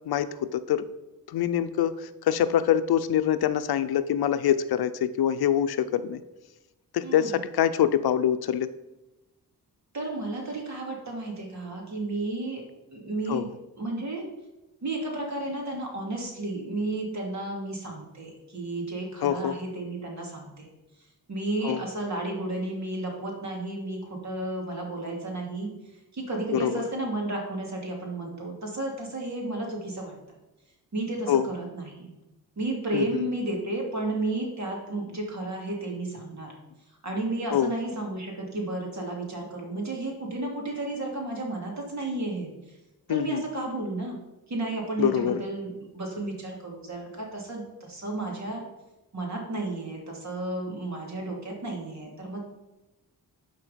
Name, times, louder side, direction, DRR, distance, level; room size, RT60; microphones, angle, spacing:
voice 1, 0.1-0.9 1.3-6.2 6.9-8.7 13.3-13.5 19.2-19.6 21.6-21.8 26.5-26.8 31.3-31.5 32.9-33.2 37.5-37.7 43.1-43.4 45.0-45.4, left 10 dB, 85° left, 12 dB, 0.6 m, -25 dB
voice 2, 7.0-7.4 9.9-12.6 12.9-13.5 13.8-14.2 14.8-20.7 21.3-25.7 26.1-30.1 30.9-32.1 32.6-36.5 37.0-42.5 43.1-44.2 44.5-48.6 49.1-52.5, right 2 dB, 50° right, 0 dB, 2.6 m, -32 dB
12.0 x 4.6 x 5.1 m, 0.99 s
wide cardioid pair, 125°, 37 cm